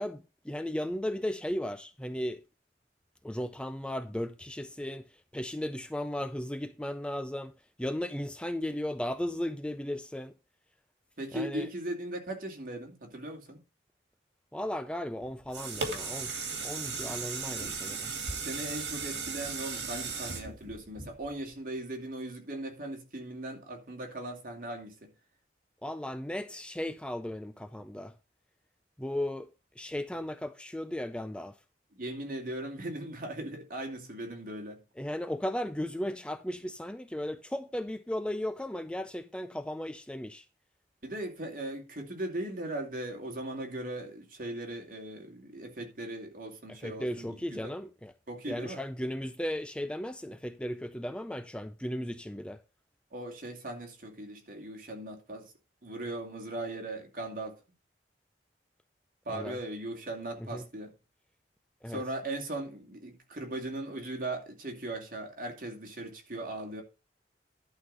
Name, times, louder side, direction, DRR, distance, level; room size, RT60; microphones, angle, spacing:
voice 1, 0.0-2.4 3.2-5.1 5.3-7.5 7.8-10.3 11.3-11.7 14.5-18.1 25.8-28.1 29.0-29.5 29.8-31.6 35.0-40.5 46.8-48.1 48.5-52.6 59.3-59.6 60.4-60.6 61.8-62.0, left 1 dB, 5° left, 0.4 m, -36 dB
voice 2, 11.2-13.6 18.3-25.1 31.9-34.8 41.0-47.7 48.3-48.8 53.1-55.5 55.8-57.6 59.2-60.9 61.9-66.8, right 1 dB, 50° right, 2.5 m, -38 dB
sound 1, 15.2-21.5 22.1-22.2, right 4 dB, 70° right, 2.4 m, -36 dB
11.5 x 4.1 x 6.2 m
head